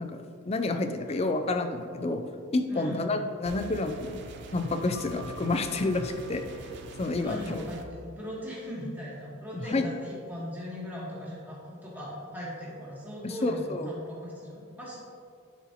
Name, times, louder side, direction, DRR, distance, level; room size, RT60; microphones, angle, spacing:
voice 1, 0.0-2.2 2.5-4.2 4.5-6.4 7.0-7.6 9.5-9.9 13.2-13.9, left 2 dB, 30° left, 7 dB, 0.4 m, -29 dB
voice 2, 2.7-3.2 7.2-15.0, equal, 10° right, -7 dB, 1.4 m, -39 dB
sound 1, 3.5-7.9, right 2 dB, 55° right, 0.5 m, -44 dB
Keyboard (musical), 4.9-7.5, right 1 dB, 70° left, 1.2 m, -51 dB
11.0 x 4.2 x 2.9 m, 2.3 s
head